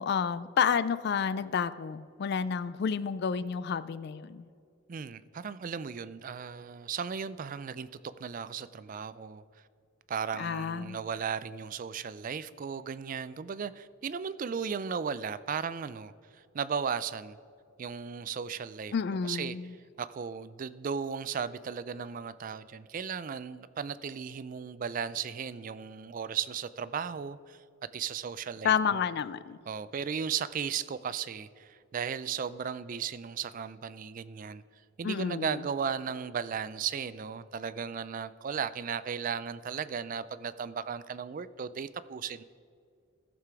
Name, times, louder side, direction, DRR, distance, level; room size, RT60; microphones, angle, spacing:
voice 1, 0.0-4.5 10.4-11.0 18.9-19.7 28.6-29.6 35.0-35.6, left 6 dB, 50° left, 16 dB, 0.3 m, -30 dB
voice 2, 4.9-7.9 8.2-9.4 10.1-17.4 17.8-18.9 19.2-19.6 20.0-27.6 27.9-29.1 29.7-34.6 35.0-42.4, right 6 dB, 40° right, 15 dB, 0.3 m, -36 dB
14.5 x 6.8 x 4.7 m, 2.3 s
head